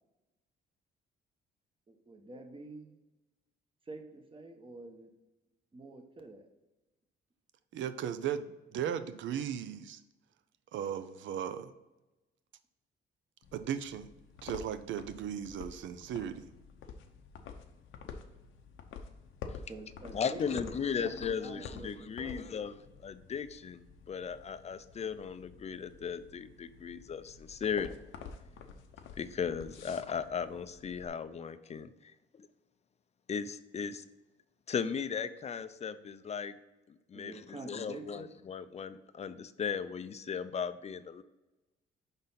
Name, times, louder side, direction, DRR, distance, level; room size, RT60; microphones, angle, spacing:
voice 1, 1.9-3.0 3.9-5.1 5.7-6.5 19.7-20.7 21.0-22.7 37.1-38.3, right 3 dB, 25° right, 4 dB, 1.0 m, -47 dB
voice 2, 7.7-10.0 10.7-11.7 13.5-14.1 14.4-16.5, right 9 dB, 70° right, 13 dB, 0.5 m, -36 dB
sound 1, 13.4-31.1, left 5 dB, 80° left, 0.7 m, -49 dB
voice 3, 20.1-28.0 29.2-32.5 33.3-34.0 34.7-36.6 36.9-41.2, left 6 dB, 35° left, 13 dB, 0.4 m, -37 dB
5.3 x 4.0 x 5.6 m, 1.0 s
cardioid pair, 90°, 20 cm